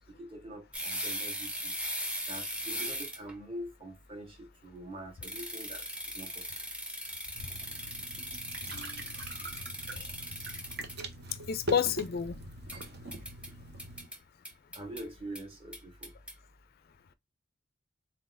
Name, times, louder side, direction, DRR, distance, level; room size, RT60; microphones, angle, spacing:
voice 1, 0.2-1.7 2.3-5.9 6.1-6.5 14.7-16.1, right 1 dB, 25° right, 1.2 m, -44 dB
sound 1, 0.7-3.3 5.2-10.9 12.7-13.5 13.8-14.2 14.4-15.0 15.3-15.4 15.7-16.3, equal, 5° right, 0.7 m, -39 dB
sound 2, 7.3-14.1, right 1 dB, 50° right, 0.8 m, -42 dB
voice 2, 11.5-12.4, left 7 dB, 50° left, 0.4 m, -30 dB
4.0 x 3.8 x 2.5 m
head